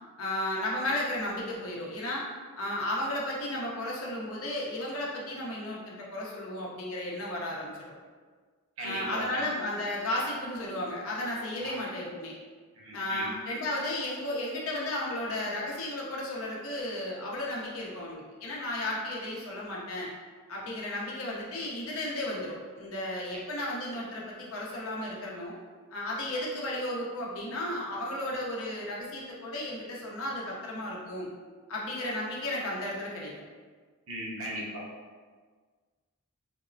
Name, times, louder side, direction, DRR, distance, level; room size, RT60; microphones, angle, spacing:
voice 1, 0.2-2.2 2.6-7.7 8.8-12.3 12.9-20.1 20.5-25.6 25.9-31.3 31.7-33.4, left 1 dB, 65° left, -4 dB, 0.6 m, -34 dB
voice 2, 8.8-9.4 11.6-11.7 12.8-13.3 34.1-34.8, right 1 dB, 65° right, -4 dB, 0.7 m, -37 dB
3.5 x 2.0 x 2.5 m, 1.5 s
head